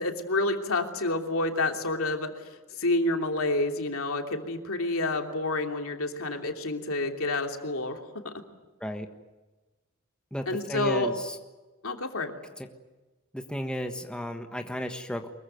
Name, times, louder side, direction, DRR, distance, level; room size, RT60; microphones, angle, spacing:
voice 1, 0.0-2.3 2.8-8.0 8.2-8.3 10.5-11.1 11.8-12.3, left 2 dB, 70° left, 3 dB, 3.0 m, -28 dB
voice 2, 10.3-11.4 12.6-12.7 13.3-15.3, equal, 5° left, 4 dB, 1.4 m, -34 dB
24.0 x 22.5 x 9.3 m, 1.2 s
head